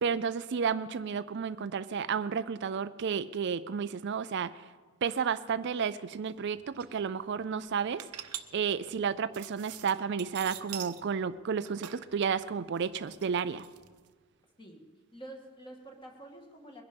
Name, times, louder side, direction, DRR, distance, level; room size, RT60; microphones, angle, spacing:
voice 1, 0.0-4.5 5.0-8.0 8.5-13.6, right 6 dB, 50° right, 13 dB, 0.4 m, -32 dB
sound 1, 6.3-6.4 6.6-6.9 7.4-11.0 11.4-14.1, right 11 dB, 90° right, 0.9 m, -44 dB
voice 2, 15.1-16.8, right 1 dB, 20° left, 2 dB, 2.1 m, -48 dB
22.0 x 11.0 x 5.3 m, 1.4 s
head